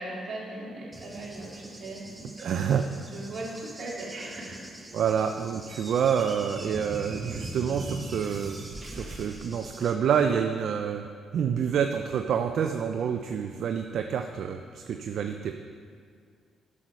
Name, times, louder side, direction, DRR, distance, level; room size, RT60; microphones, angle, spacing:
voice 1, 0.0-4.6, right 2 dB, 50° right, -4 dB, 2.4 m, -39 dB
Cricket / Thunder, 0.9-9.9, right 1 dB, 10° right, 0.8 m, -42 dB
voice 2, 2.4-2.9 4.9-11.0 11.3-15.5, right 7 dB, 65° right, 6 dB, 0.4 m, -28 dB
Squeak, 5.6-10.2, right 2 dB, 30° right, 1.2 m, -46 dB
8.4 x 6.2 x 5.3 m, 2.1 s
cardioid pair, 90°, 0 cm